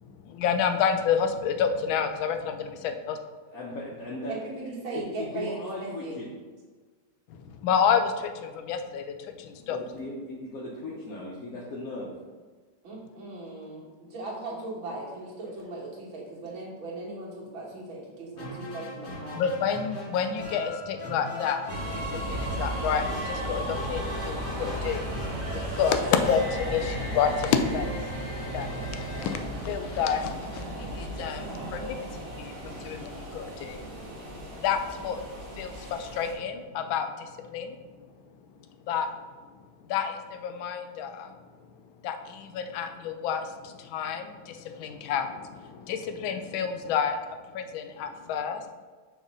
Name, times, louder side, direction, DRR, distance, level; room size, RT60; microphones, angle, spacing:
voice 1, 0.0-3.2 7.3-9.8 19.3-25.1 25.5-27.9 28.5-28.9 29.2-29.4 29.6-35.2 35.6-37.8 38.9-39.1 39.9-41.3 42.0-47.2 47.5-48.7, left 7 dB, 80° left, 7 dB, 1.4 m, -29 dB
voice 2, 3.5-4.4 4.9-6.3 9.6-12.1, left 2 dB, 55° left, -5 dB, 1.1 m, -37 dB
voice 3, 4.3-6.2 12.8-19.4, right 2 dB, 80° right, -5 dB, 2.3 m, -38 dB
sound 1, 18.3-30.2, left 1 dB, 35° left, 0.9 m, -40 dB
sound 2, 21.7-36.3, right 1 dB, 45° right, 1.5 m, -35 dB
6.3 x 3.2 x 5.2 m, 1.4 s
omnidirectional pair, 2.2 m